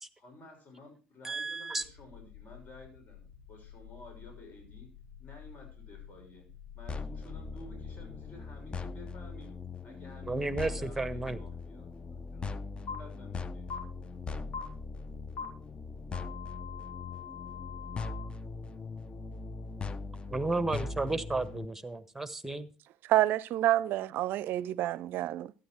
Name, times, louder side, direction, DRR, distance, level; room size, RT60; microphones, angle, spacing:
voice 1, 0.2-4.9 5.2-6.5 6.7-9.5 9.8-13.6, left 2 dB, 40° left, 6.3 m, -53 dB
voice 2, 1.2-1.8 10.2-11.4 20.3-22.7, right 2 dB, 5° right, 1.3 m, -33 dB
sound 1, 1.8-8.3, left 9 dB, 80° left, 3.3 m, -51 dB
sound 2, 6.9-21.6, left 4 dB, 25° left, 0.8 m, -40 dB
sound 3, 12.9-13.0 13.7-13.8 14.5-14.6 15.4-15.5 16.1-18.2, left 6 dB, 60° left, 3.6 m, -42 dB
voice 3, 23.1-25.5, right 14 dB, 55° right, 0.5 m, -28 dB
12.5 x 9.6 x 4.5 m
hypercardioid pair, 70°, 4 cm